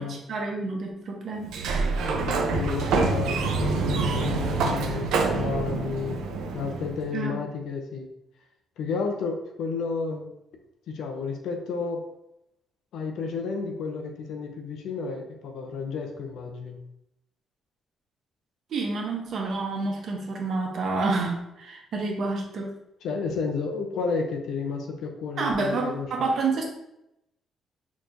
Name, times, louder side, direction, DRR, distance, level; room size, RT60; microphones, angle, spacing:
voice 1, 0.3-1.6 7.1-7.4 18.7-22.7 25.4-26.6, right 3 dB, 60° right, 1 dB, 0.9 m, -28 dB
Sliding door, 1.4-7.1, right 4 dB, 85° right, 0.5 m, -26 dB
voice 2, 2.0-6.2 6.5-8.1 8.8-10.3 10.9-12.0 12.9-16.8 23.0-26.1, left 5 dB, 80° left, 4 dB, 0.5 m, -31 dB
4.2 x 2.9 x 2.6 m, 0.83 s
cardioid pair, 90°, 0 cm